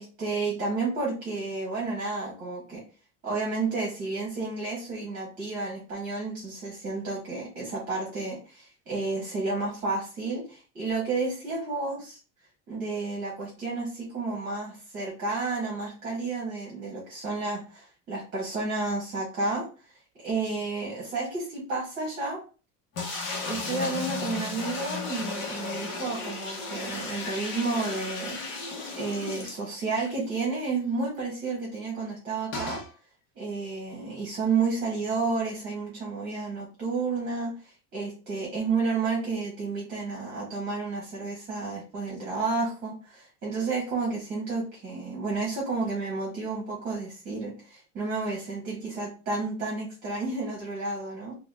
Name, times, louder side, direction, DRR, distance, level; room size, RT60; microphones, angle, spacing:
voice 1, 0.0-2.8 3.2-12.2 12.7-19.7 20.2-22.4 23.4-28.4 28.9-32.8 33.3-51.4, right 3 dB, 30° right, -4 dB, 1.4 m, -31 dB
sound 1, 22.9-30.1 30.4-30.5 30.8-30.9 32.5-32.9, left 3 dB, 40° left, 0.9 m, -34 dB
4.1 x 2.4 x 2.5 m, 0.36 s
cardioid pair, 170°, 31 cm